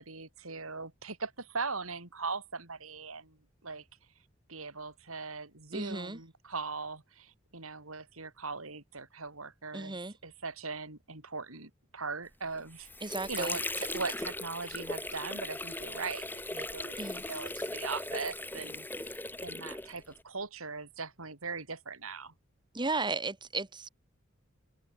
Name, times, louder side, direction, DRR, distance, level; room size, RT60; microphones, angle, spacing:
voice 1, 0.0-3.8 4.5-12.9 13.3-22.3, right 4 dB, 85° right, 4.6 m, -40 dB
voice 2, 5.7-6.2 9.7-10.1 13.0-13.6 17.0-17.2 22.7-23.9, right 3 dB, 20° right, 1.9 m, -35 dB
Water / Sink (filling or washing), 12.5-20.2, left 2 dB, 10° left, 2.4 m, -38 dB
head